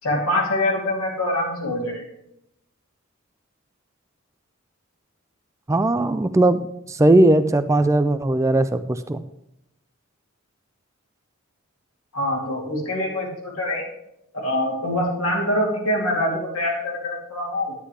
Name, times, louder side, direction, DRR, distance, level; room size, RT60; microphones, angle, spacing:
voice 1, 0.0-2.0 12.1-13.8 14.3-17.7, left 1 dB, 85° left, -2 dB, 2.8 m, -24 dB
voice 2, 5.7-9.2, right 2 dB, 15° right, 11 dB, 0.3 m, -18 dB
9.9 x 9.7 x 3.3 m, 0.82 s
head